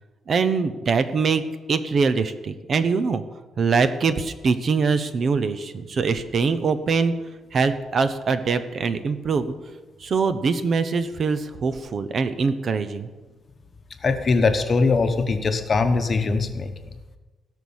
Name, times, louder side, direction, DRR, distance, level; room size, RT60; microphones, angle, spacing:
voice 1, 0.3-1.4 1.7-3.2 3.6-7.1 7.5-9.5 10.0-13.1, right 5 dB, 40° right, 11 dB, 0.7 m, -23 dB
voice 2, 14.0-16.9, left 4 dB, 30° left, 7 dB, 1.0 m, -21 dB
16.5 x 6.4 x 7.2 m, 1.2 s
cardioid pair, 155°, 0 cm